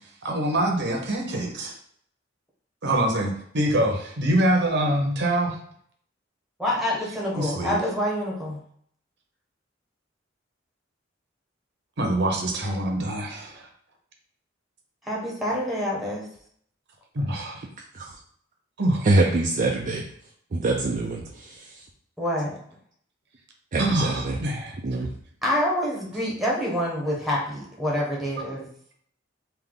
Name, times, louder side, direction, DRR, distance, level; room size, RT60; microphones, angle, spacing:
voice 1, 0.2-1.7 2.8-5.6 7.4-7.8 12.0-13.7 17.1-17.6 18.8-19.3 23.8-24.7, right 1 dB, 60° right, 2 dB, 0.9 m, -25 dB
voice 2, 6.6-8.6 15.0-16.2 22.2-22.5 25.4-28.6, equal, ahead, -3 dB, 1.1 m, -26 dB
voice 3, 19.0-20.0 20.5-21.8 23.7-24.4 24.8-25.1, right 2 dB, 45° right, 0 dB, 0.4 m, -24 dB
3.5 x 2.7 x 3.7 m, 0.64 s
head